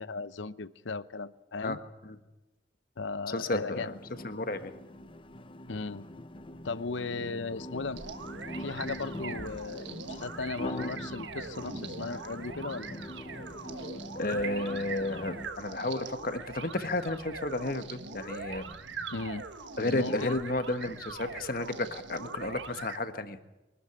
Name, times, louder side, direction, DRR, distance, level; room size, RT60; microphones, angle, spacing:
voice 1, 0.0-1.8 3.0-3.9 5.7-6.0 6.6-8.0 8.6-13.0 19.1-19.4 19.8-20.4, left 3 dB, 90° left, 15 dB, 0.8 m, -36 dB
voice 2, 3.3-3.9 4.2-4.7 14.1-18.6 19.8-23.4, left 2 dB, 50° left, 9 dB, 1.4 m, -32 dB
sound 1, 3.8-15.5, left 1 dB, 30° left, 0.7 m, -42 dB
sound 2, 8.0-23.0, right 4 dB, 80° right, 1.4 m, -42 dB
24.0 x 13.0 x 9.9 m, 1.0 s
head